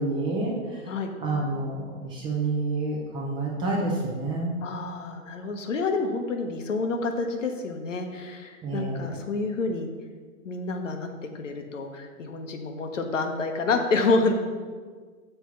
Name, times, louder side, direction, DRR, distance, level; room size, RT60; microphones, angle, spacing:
voice 1, 0.0-0.9 1.2-4.5 8.6-9.2, right 2 dB, 10° right, -2 dB, 0.6 m, -29 dB
voice 2, 4.6-9.9 10.4-14.4, left 3 dB, 60° left, 5 dB, 1.0 m, -28 dB
6.8 x 4.5 x 5.7 m, 1.5 s
figure-of-eight pair, 110°, 42 cm